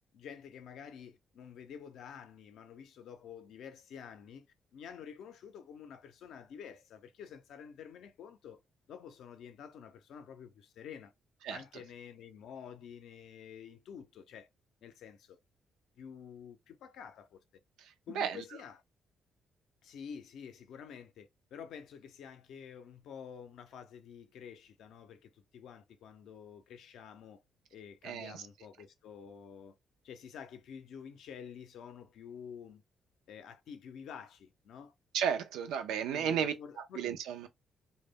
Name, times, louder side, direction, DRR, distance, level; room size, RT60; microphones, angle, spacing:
voice 1, 0.1-4.5 4.7-8.6 8.9-11.1 11.5-14.5 14.8-15.4 16.0-17.4 18.1-18.8 19.8-27.4 27.7-29.7 30.0-32.8 33.3-34.9 36.1-37.1, left 7 dB, 75° left, 0.5 m, -49 dB
voice 2, 28.0-28.4 35.1-36.5 37.0-37.5, right 8 dB, 90° right, 0.4 m, -33 dB
2.1 x 2.1 x 3.4 m
cardioid pair, 90°, 0 cm